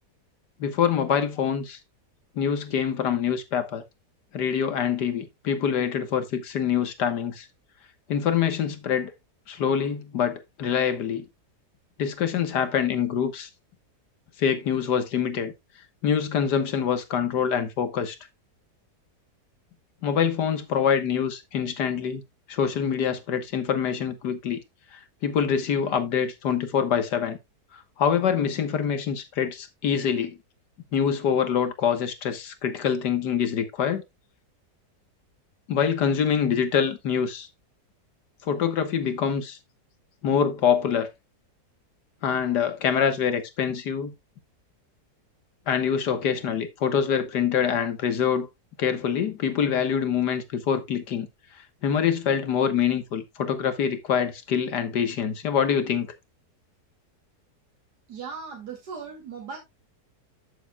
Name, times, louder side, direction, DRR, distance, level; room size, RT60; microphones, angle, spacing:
voice 1, 0.6-1.8 2.4-3.8 4.3-7.5 8.1-9.1 9.5-11.3 12.0-13.5 14.4-15.5 16.0-18.2 20.0-22.2 22.5-24.6 24.9-27.4 27.7-30.4 30.9-34.0 35.7-37.5 38.4-39.6 40.2-41.1 42.2-44.1 45.7-48.5 48.8-51.3 51.8-56.1, left 7 dB, 90° left, 1.9 m, -25 dB
voice 2, 58.1-59.6, right 5 dB, 75° right, 2.8 m, -38 dB
11.5 x 7.6 x 2.3 m
omnidirectional pair, 1.8 m